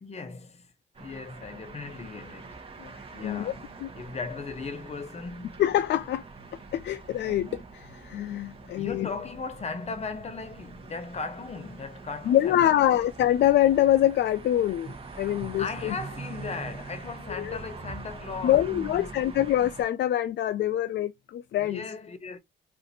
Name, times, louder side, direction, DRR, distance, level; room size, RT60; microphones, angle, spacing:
voice 1, 0.0-0.7 1.0-2.7 3.1-5.6 8.6-12.8 15.2-19.3 21.6-22.4, left 4 dB, 35° left, 0.9 m, -38 dB
sound 1, 0.9-19.8, right 4 dB, 30° right, 1.0 m, -44 dB
voice 2, 5.6-6.2 6.7-9.1 12.3-15.9 17.4-17.6 18.4-21.8, left 12 dB, 60° left, 0.4 m, -25 dB
2.6 x 2.5 x 4.0 m
cardioid pair, 90°, 20 cm